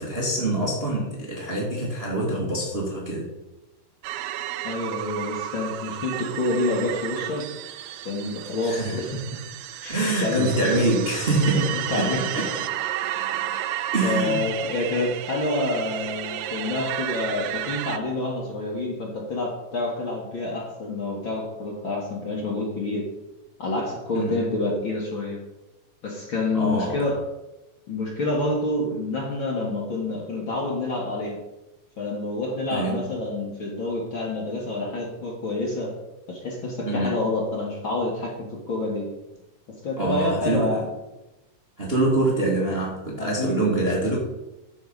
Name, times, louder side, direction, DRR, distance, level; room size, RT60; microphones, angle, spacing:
voice 1, 0.0-3.3 8.6-9.0 9.9-12.1 12.3-12.5 13.9-14.4 24.1-24.3 26.5-27.0 32.7-33.1 36.8-37.2 40.0-40.8 41.8-44.2, right 2 dB, 25° right, -3 dB, 1.6 m, -25 dB
sound 1, 4.0-18.0, right 12 dB, 85° right, 2.3 m, -32 dB
voice 2, 4.6-7.5 8.1-9.2 9.8-10.6 11.9-12.2 13.5-13.7 14.0-23.1 23.6-25.4 26.0-27.2 27.9-31.4 32.0-35.9 36.3-39.1 39.8-40.8 43.2-43.9, left 2 dB, 45° left, -1 dB, 2.1 m, -28 dB
11.0 x 7.2 x 5.3 m, 0.98 s
omnidirectional pair, 3.8 m